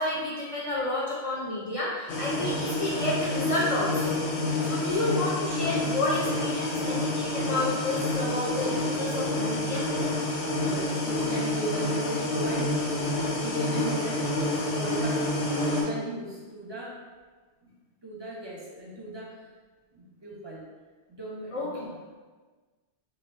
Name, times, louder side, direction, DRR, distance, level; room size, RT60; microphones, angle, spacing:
voice 1, 0.0-9.8 21.5-21.9, left 2 dB, 45° left, -6 dB, 0.5 m, -30 dB
sound 1, 2.1-15.8, left 2 dB, 85° left, 1.0 m, -28 dB
voice 2, 10.7-17.0 17.6-17.7 18.0-19.5 19.9-20.7 21.1-21.8, right 2 dB, 30° right, -4 dB, 0.6 m, -38 dB
4.3 x 3.0 x 2.6 m, 1.4 s
omnidirectional pair, 1.1 m